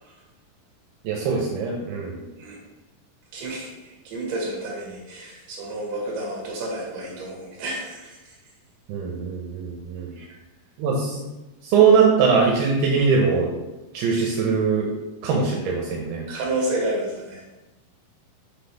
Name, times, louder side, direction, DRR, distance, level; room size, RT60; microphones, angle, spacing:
voice 1, 1.0-2.2 8.9-10.1 10.8-11.2 11.6-13.5 13.9-14.9 15.2-16.2, right 5 dB, 80° right, -1 dB, 2.8 m, -21 dB
voice 2, 3.3-8.4 10.2-10.3 16.3-17.4, right 1 dB, 60° right, -2 dB, 3.0 m, -30 dB
6.1 x 5.5 x 3.4 m, 1.0 s
omnidirectional pair, 4.6 m